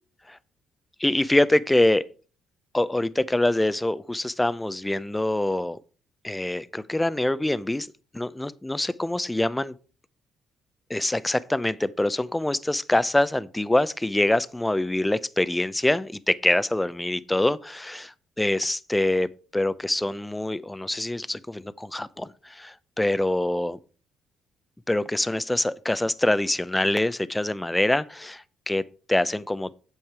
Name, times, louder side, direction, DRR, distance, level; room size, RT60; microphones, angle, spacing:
voice 1, 1.0-2.0 2.7-5.8 6.2-7.9 8.1-9.7 10.9-23.8 24.9-29.7, left 1 dB, 10° left, 0.6 m, -25 dB
8.7 x 7.2 x 4.7 m
supercardioid pair, 55°, 0 cm